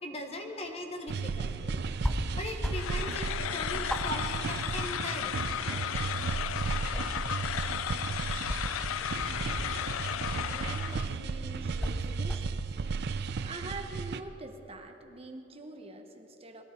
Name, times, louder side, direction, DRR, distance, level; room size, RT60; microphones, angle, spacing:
voice 1, 0.0-1.8 2.4-3.3 3.5-5.4, left 1 dB, 30° left, 4 dB, 1.3 m, -39 dB
sound 1, 1.1-14.2, right 4 dB, 55° right, 0.5 m, -35 dB
sound 2, 2.0-2.2 2.6-3.0 3.3-3.4 3.9-5.2 5.5-6.4 6.7-7.7 8.5-10.1 10.9-11.1 11.7-12.6, equal, 5° left, 0.6 m, -35 dB
sound 3, 2.7-11.1, left 11 dB, 85° left, 0.3 m, -35 dB
voice 2, 10.2-12.7 13.4-16.6, right 2 dB, 30° right, 5 dB, 1.0 m, -45 dB
21.0 x 13.5 x 4.4 m, 2.9 s
head